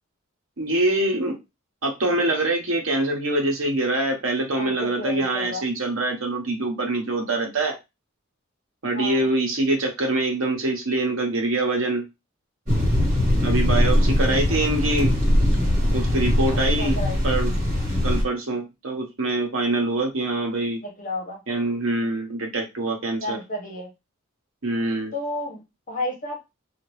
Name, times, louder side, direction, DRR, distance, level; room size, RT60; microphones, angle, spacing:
voice 1, 0.6-1.4 1.8-7.7 8.8-12.0 13.4-15.1 15.9-17.0 17.2-17.5 18.0-20.8 21.5-23.4 24.6-25.1, right 2 dB, 65° right, 1 dB, 1.0 m, -24 dB
voice 2, 4.5-5.6 8.9-9.3 16.8-17.4 20.8-21.4 23.2-23.9 25.1-26.4, left 1 dB, 40° left, -1 dB, 1.2 m, -32 dB
sound 1, 12.7-18.2, left 1 dB, 35° right, 1.7 m, -21 dB
2.8 x 2.5 x 3.1 m, 0.23 s
head